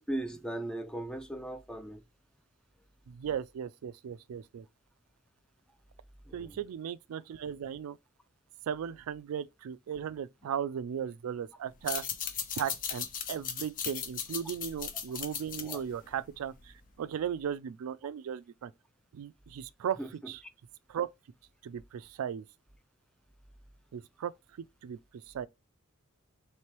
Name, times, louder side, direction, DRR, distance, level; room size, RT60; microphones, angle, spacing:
voice 1, 0.0-2.0 6.3-6.6 15.6-15.8 20.0-20.3, right 1 dB, 5° left, 0.4 m, -38 dB
voice 2, 3.1-4.7 6.3-8.0 8.7-12.0 12.6-18.7 19.1-20.0 20.3-20.4 20.9-21.1 21.6-22.4 23.9-24.3 24.8-25.0 25.3-25.5, right 8 dB, 75° right, 0.3 m, -36 dB
sound 1, 11.7-16.9, left 7 dB, 40° left, 0.6 m, -37 dB
3.2 x 3.0 x 4.5 m
head